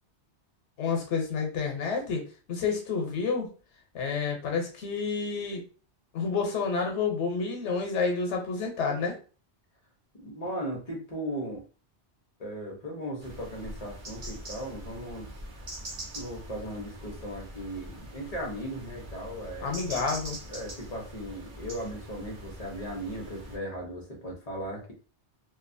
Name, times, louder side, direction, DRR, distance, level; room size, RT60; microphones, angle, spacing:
voice 1, 0.8-2.2 2.5-3.5 3.9-5.6 6.1-9.1 19.6-20.4, left 5 dB, 90° left, 2 dB, 1.0 m, -29 dB
voice 2, 10.2-11.6 12.4-15.3 16.1-19.7 20.5-24.9, equal, 40° left, -1 dB, 0.8 m, -37 dB
sound 1, 13.2-23.6, right 1 dB, 50° right, 0.9 m, -43 dB
2.7 x 2.3 x 2.5 m, 0.37 s
omnidirectional pair, 1.2 m